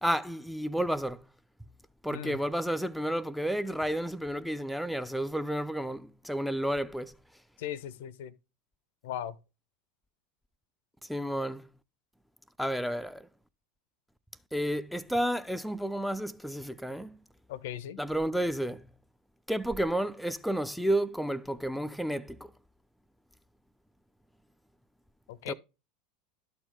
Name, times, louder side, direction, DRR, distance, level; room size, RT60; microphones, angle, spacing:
voice 1, 0.0-1.2 2.0-7.1 11.1-11.7 12.6-13.3 14.5-17.2 18.0-18.9 19.5-22.4 25.5-25.6, right 1 dB, ahead, 0.4 m, -31 dB
voice 2, 7.6-8.3 9.0-9.4 17.5-18.0 25.3-25.5, left 11 dB, 60° left, 0.5 m, -38 dB
11.5 x 4.3 x 3.5 m
figure-of-eight pair, 75°, 0 cm